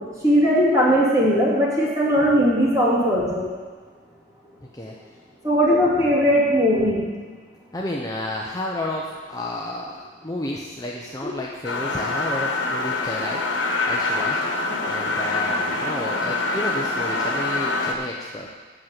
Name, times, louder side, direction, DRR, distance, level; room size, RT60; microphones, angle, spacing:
voice 1, 0.2-3.5 5.4-7.0 11.2-11.3, equal, 15° right, -8 dB, 2.9 m, -19 dB
voice 2, 2.2-2.5 4.7-5.0 7.7-13.4 13.9-14.4 14.9-18.5, left 1 dB, 20° left, -3 dB, 0.8 m, -31 dB
sound 1, 11.6-17.9, left 3 dB, 85° left, 1.2 m, -25 dB
8.5 x 6.6 x 7.5 m, 1.5 s
head